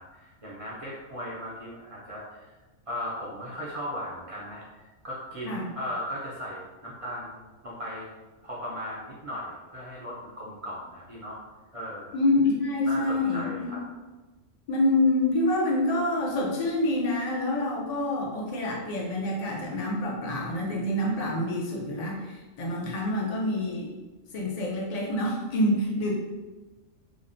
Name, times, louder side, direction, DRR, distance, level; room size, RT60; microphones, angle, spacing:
voice 1, 0.0-2.5 2.9-8.1 8.4-11.4 11.7-12.2 12.8-13.8, equal, 55° right, -6 dB, 0.3 m, -37 dB
voice 2, 12.1-13.7 14.7-23.9 24.3-26.1, left 1 dB, 55° left, -2 dB, 0.4 m, -27 dB
2.9 x 2.0 x 2.5 m, 1.2 s
omnidirectional pair, 1.3 m